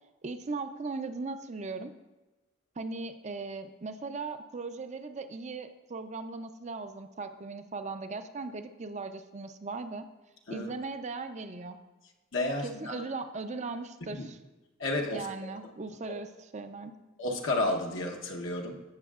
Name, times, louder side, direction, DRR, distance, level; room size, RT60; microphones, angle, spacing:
voice 1, 0.2-1.9 2.8-10.1 10.5-11.8 12.6-14.4 15.1-16.9, right 3 dB, 35° right, 9 dB, 0.5 m, -38 dB
voice 2, 12.3-13.0 14.1-14.2 14.8-15.3 17.2-18.8, left 2 dB, 70° left, 0 dB, 1.0 m, -31 dB
16.0 x 6.3 x 2.4 m, 1.1 s
head